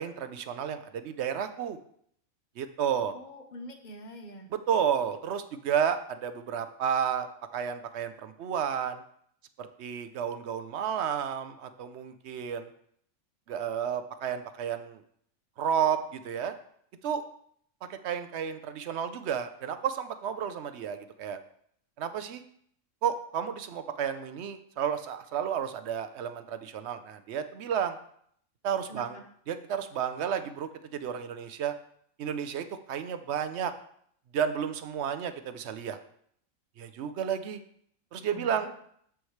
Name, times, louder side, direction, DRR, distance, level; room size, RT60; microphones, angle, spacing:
voice 1, 0.0-1.8 2.6-3.1 4.5-7.3 7.5-9.0 9.6-12.7 13.5-15.0 15.6-16.5 17.0-17.2 17.9-21.4 22.0-22.4 23.0-28.0 28.6-29.2 29.5-31.7 32.2-33.7 34.3-36.0 36.8-37.6 38.1-38.7, right 8 dB, 60° right, 10 dB, 0.8 m, -31 dB
voice 2, 3.1-4.5 28.9-29.2 38.1-38.7, equal, 35° left, 5 dB, 1.0 m, -45 dB
13.5 x 4.8 x 3.2 m, 0.66 s
omnidirectional pair, 1.5 m